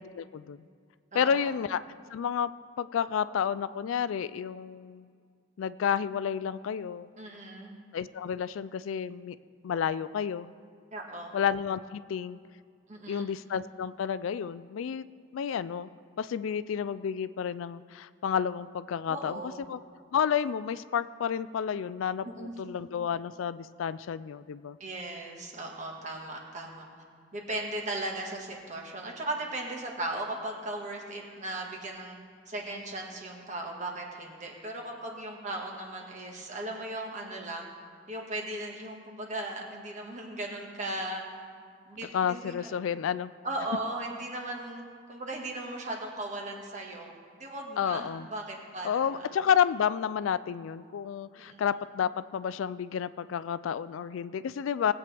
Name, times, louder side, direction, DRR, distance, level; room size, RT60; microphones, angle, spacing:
voice 1, 0.1-0.6 1.1-1.8 2.1-2.5 2.8-5.1 5.6-7.1 7.9-9.4 9.6-10.5 11.3-12.4 13.1-15.1 15.3-15.9 16.2-19.8 20.1-24.8 42.1-43.3 47.8-48.3 48.8-54.9, left 8 dB, 80° left, 15 dB, 0.3 m, -30 dB
voice 2, 1.1-1.6 7.2-7.8 10.9-11.4 12.9-13.3 19.1-19.7 22.2-22.5 24.8-26.8 27.3-32.2 32.5-37.7 38.1-41.2 41.9-42.7 43.4-44.8 45.1-47.1 47.4-49.3 51.3-51.6, right 2 dB, 35° right, 0 dB, 1.6 m, -37 dB
19.0 x 8.3 x 3.4 m, 2.1 s
head